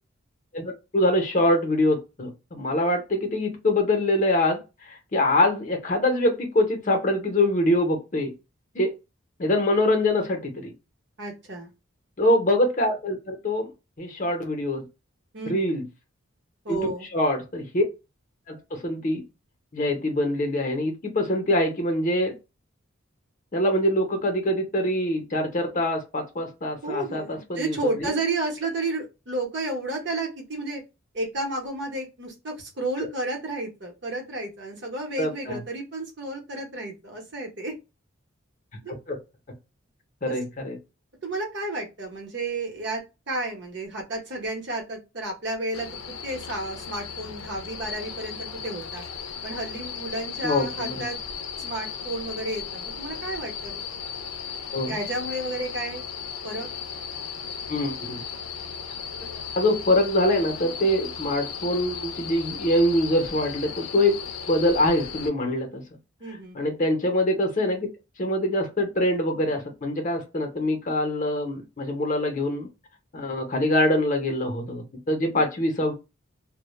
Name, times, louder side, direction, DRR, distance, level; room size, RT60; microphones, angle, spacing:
voice 1, 0.5-8.3 8.7-8.9 9.4-10.7 12.2-13.7 14.0-14.9 15.5-15.8 16.7-17.8 18.5-19.2 19.7-22.3 23.5-28.1 33.0-33.1 35.2-35.6 38.9-39.2 40.2-40.8 50.4-51.1 54.7-55.0 57.7-58.2 59.6-64.1 64.5-65.8 66.5-67.9 68.2-72.7 73.1-75.9, left 1 dB, 40° left, 0.6 m, -24 dB
voice 2, 11.2-11.7 15.3-15.6 16.6-17.1 26.8-30.8 31.1-37.7 38.8-38.9 40.3-40.4 41.2-43.0 43.3-49.0 49.4-51.2 51.6-53.7 54.9-56.0 56.4-56.7 66.2-66.6, right 2 dB, 55° right, 0.8 m, -32 dB
sound 1, 45.7-65.3, left 6 dB, 85° left, 0.5 m, -36 dB
2.1 x 2.0 x 3.0 m
head